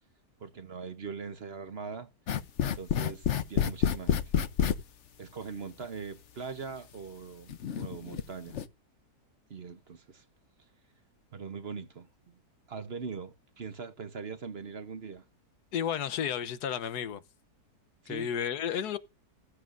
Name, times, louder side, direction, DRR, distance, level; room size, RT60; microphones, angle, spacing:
voice 1, 0.4-2.1 2.6-4.3 5.2-8.6 9.5-10.2 11.3-12.4 12.7-15.2 18.0-18.3, right 5 dB, 45° right, 1.1 m, -41 dB
sound 1, 2.3-4.8 5.8-5.9 6.6-6.7 7.5-8.2 8.5-8.7, left 8 dB, 55° left, 1.0 m, -28 dB
voice 2, 15.7-17.2 18.1-19.0, left 8 dB, 90° left, 1.4 m, -32 dB
15.0 x 14.5 x 2.6 m
omnidirectional pair, 1.7 m